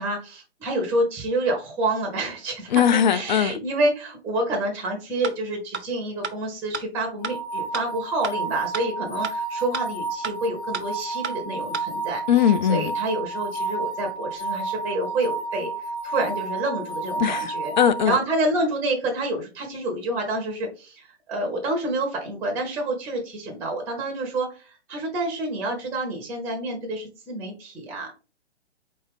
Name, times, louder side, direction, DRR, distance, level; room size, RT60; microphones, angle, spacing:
voice 1, 0.0-12.2 12.7-15.7 16.0-17.7 18.0-28.1, right 2 dB, 5° right, 0.7 m, -28 dB
voice 2, 2.7-3.6 12.3-12.9 17.2-18.2, left 9 dB, 45° left, 0.4 m, -20 dB
sound 1, 5.2-5.3 5.7-5.8 6.2-6.3 6.7-6.8 7.2-7.3 7.7-7.8 8.2-8.3 8.7-8.8 9.2-9.3 9.7-9.8 10.2-10.3 10.7-10.8 11.2-11.3 11.7-11.8, right 5 dB, 90° right, 0.8 m, -29 dB
sound 2, 7.2-18.0, right 3 dB, 70° left, 1.6 m, -31 dB
4.6 x 2.8 x 3.4 m
figure-of-eight pair, 130°, 33 cm